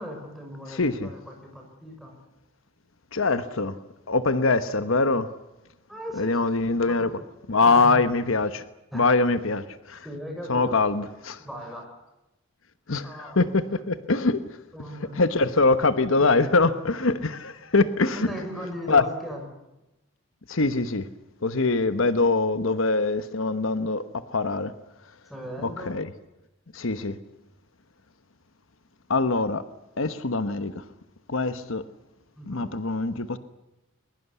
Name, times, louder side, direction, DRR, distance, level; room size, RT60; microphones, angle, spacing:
voice 1, 0.0-2.1 5.9-7.1 7.6-8.0 8.9-9.1 10.0-10.8 11.4-11.9 13.0-13.8 14.7-15.1 18.1-19.5 25.3-25.9 32.4-32.7, equal, ahead, 2 dB, 6.1 m, -38 dB
voice 2, 0.7-1.1 3.1-3.7 4.1-5.3 6.2-7.1 7.5-8.6 8.9-10.0 10.5-11.4 12.9-14.4 15.1-18.3 18.9-19.0 20.5-21.1 21.4-24.0 24.3-24.7 25.8-26.1 26.7-27.2 29.1-29.6 30.0-30.8 31.3-31.8 32.5-33.4, left 3 dB, 70° left, 12 dB, 1.1 m, -23 dB
22.0 x 21.5 x 8.2 m, 0.95 s
head